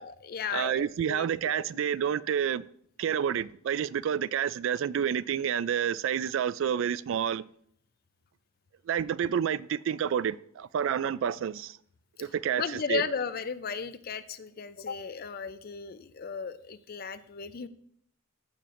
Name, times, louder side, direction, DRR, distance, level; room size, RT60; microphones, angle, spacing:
voice 1, 0.0-1.3 1.5-1.6 12.6-17.7, left 6 dB, 45° left, 0.5 m, -35 dB
voice 2, 0.5-2.6 3.0-7.4 8.9-11.8 12.2-13.0, right 8 dB, 65° right, 0.3 m, -29 dB
14.5 x 6.7 x 2.5 m
head